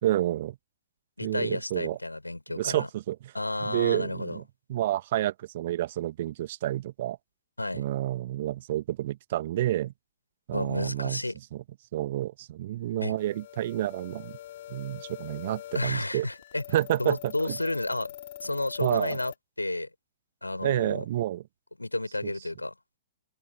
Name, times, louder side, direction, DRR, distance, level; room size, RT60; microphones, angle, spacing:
voice 1, 0.0-0.6 1.2-2.0 2.5-3.3 3.6-4.4 4.7-7.2 7.7-9.9 10.5-11.2 11.5-11.6 11.9-14.4 14.7-16.3 16.7-17.6 18.8-19.2 20.6-21.4 22.2-22.3, right 14 dB, 45° right, 1.5 m, -29 dB
voice 2, 1.2-2.9 3.3-4.4 7.6-7.8 10.5-11.3 13.0-13.1 15.7-16.6 17.0-18.1 18.4-19.3 19.6-19.9 20.4-21.0 21.8-22.7, left 2 dB, 80° left, 5.5 m, -31 dB
sound 1, 13.2-19.3, left 13 dB, 45° left, 4.8 m, -44 dB
figure-of-eight pair, 115°, 0 cm